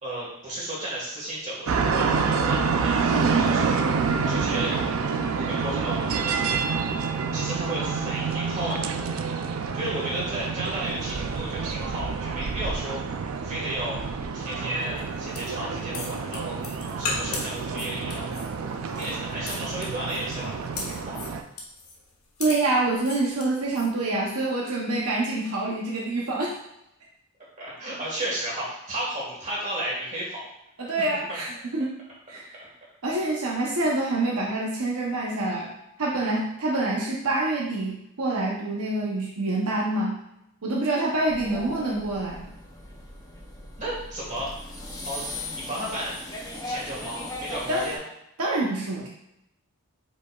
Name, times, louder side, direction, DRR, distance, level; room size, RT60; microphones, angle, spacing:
voice 1, 0.0-3.8 4.2-4.7 5.4-6.8 7.3-9.0 9.7-13.0 13.4-14.0 14.3-16.6 17.0-18.2 19.0-21.2 27.6-30.4 31.3-31.4 32.6-32.7 41.3-41.9 43.8-44.5 45.1-46.1 46.6-48.0, right 1 dB, 35° right, -5 dB, 1.6 m, -34 dB
sound 1, 1.7-21.4, right 5 dB, 65° right, 0.4 m, -28 dB
sound 2, 14.9-23.9, left 3 dB, 75° left, 1.1 m, -37 dB
voice 2, 22.4-26.5 30.8-32.0 32.3-32.5 33.0-35.7 36.0-40.2 40.6-42.4 47.7-47.8 48.4-49.1, right 2 dB, 80° right, -3 dB, 0.8 m, -26 dB
sound 3, 41.3-48.0, left 1 dB, 15° left, 0.6 m, -38 dB
5.1 x 4.2 x 2.3 m, 0.83 s
head